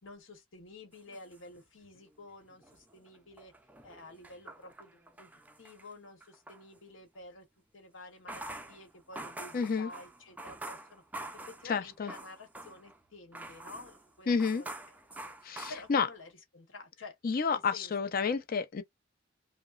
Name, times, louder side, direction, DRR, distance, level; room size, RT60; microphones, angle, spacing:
voice 1, 0.0-3.5 3.8-5.3 5.6-7.5 7.7-11.0 11.3-14.7 15.2-15.3 15.7-17.2 17.5-17.9, left 2 dB, 85° left, 1.0 m, -51 dB
sound 1, 0.9-2.1 2.5-6.6 8.1-13.0 13.3-16.3, right 2 dB, 10° right, 0.3 m, -46 dB
voice 2, 9.5-9.9 11.7-12.1 14.3-14.6 15.4-16.1 17.2-18.8, left 5 dB, 50° left, 0.5 m, -30 dB
2.9 x 2.0 x 2.3 m
head